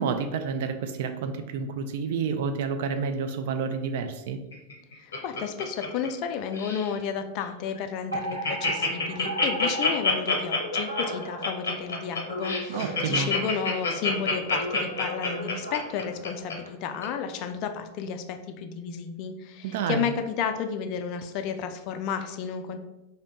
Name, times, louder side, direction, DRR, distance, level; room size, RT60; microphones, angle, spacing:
voice 1, 0.0-4.4 12.7-13.3 19.6-20.1, right 6 dB, 55° right, 7 dB, 0.3 m, -29 dB
Laughter, 4.5-6.3 6.5-6.9 7.4-7.5 7.8-7.9 8.1-16.5 17.0-17.1, left 4 dB, 65° left, 0.7 m, -27 dB
voice 2, 5.0-22.8, left 7 dB, 40° left, 7 dB, 0.3 m, -32 dB
Alarm, 8.1-16.7, right 1 dB, 85° right, 0.6 m, -37 dB
2.7 x 2.1 x 4.0 m, 0.98 s
figure-of-eight pair, 90°, 0 cm